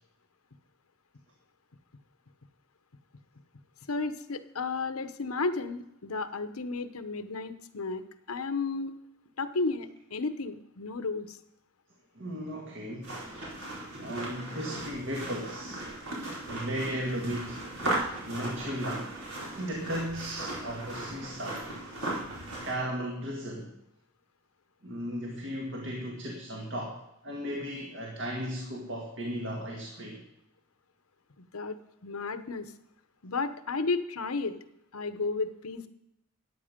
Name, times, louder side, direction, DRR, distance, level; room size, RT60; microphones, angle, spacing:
voice 1, 3.9-8.9 9.4-11.4 31.4-31.8 32.0-32.7 33.2-34.6 34.9-35.9, left 3 dB, 90° left, 10 dB, 1.0 m, -33 dB
voice 2, 12.2-13.1 14.0-15.8 16.3-19.1 19.5-21.7 22.6-23.7 24.8-30.2, equal, 60° right, -1 dB, 2.0 m, -36 dB
sound 1, 13.0-22.7, right 1 dB, 90° right, 4.6 m, -37 dB
14.0 x 9.6 x 5.2 m, 0.82 s
head